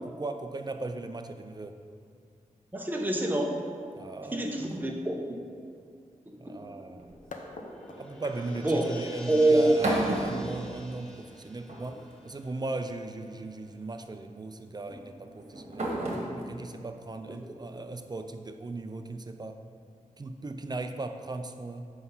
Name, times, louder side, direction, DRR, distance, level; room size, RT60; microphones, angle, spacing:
voice 1, 0.2-1.8 3.9-4.6 6.4-7.1 8.0-15.9 16.4-19.6 20.2-21.9, right 3 dB, 30° right, 7 dB, 0.4 m, -38 dB
voice 2, 2.7-3.6 4.3-5.1 6.3-6.5 8.6-8.9 9.3-9.8, right 1 dB, 15° right, 1 dB, 1.0 m, -25 dB
sound 1, 6.7-13.3 13.6-13.7, left 1 dB, 5° left, 1.3 m, -48 dB
sound 2, 7.0-7.5 9.4-11.3 11.7-12.3 13.4-13.7 14.9-18.2, right 1 dB, 55° right, 1.5 m, -34 dB
sound 3, 7.3-13.1, left 2 dB, 75° left, 0.8 m, -49 dB
8.0 x 5.5 x 5.5 m, 2.2 s
wide cardioid pair, 125°, 14 cm